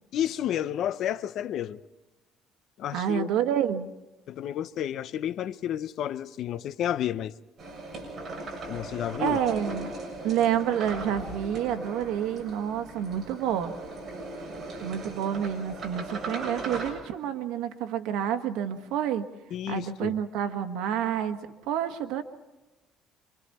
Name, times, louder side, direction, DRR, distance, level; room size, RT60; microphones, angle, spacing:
voice 1, 0.1-1.8 2.8-3.3 4.3-7.3 8.7-9.4 19.5-20.1, left 11 dB, 60° left, 0.7 m, -31 dB
voice 2, 2.9-3.9 9.2-9.9 10.2-13.7 14.8-19.2 19.7-21.4 21.7-22.2, right 9 dB, 85° right, 1.6 m, -28 dB
sound 1, 7.6-16.9, right 2 dB, 35° right, 6.8 m, -38 dB
26.5 x 25.0 x 4.3 m
cardioid pair, 145°, 0 cm